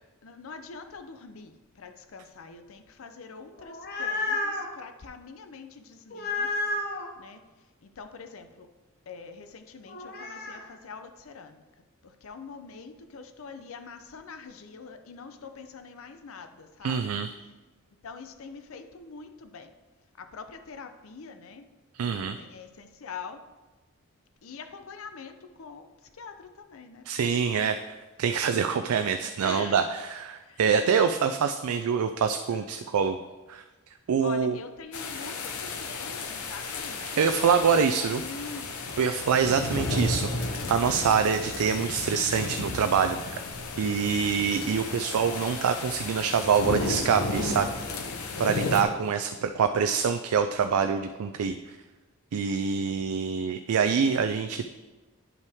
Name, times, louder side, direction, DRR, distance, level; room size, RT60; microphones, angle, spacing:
voice 1, 0.2-6.5 7.2-7.4 8.0-8.7 9.1-11.6 12.2-17.0 18.0-19.7 20.2-21.7 22.2-23.4 24.4-25.9 26.2-27.4 29.4-29.8 30.5-30.6 32.5-32.9 34.2-37.3 38.1-39.1, left 5 dB, 65° left, 8 dB, 0.5 m, -44 dB
sound 1, 3.5-4.7 6.1-7.1 9.9-10.6, left 2 dB, 45° left, 0.9 m, -31 dB
voice 2, 16.8-17.3 21.9-22.4 27.1-33.2 33.5-33.6 34.1-34.6 37.0-38.2 39.0-43.4 43.8-47.7 48.4-51.8 52.3-54.7, right 6 dB, 80° right, 8 dB, 0.4 m, -25 dB
sound 2, 34.9-48.8, left 3 dB, 90° left, 0.9 m, -33 dB
9.5 x 5.4 x 3.5 m, 1.2 s
head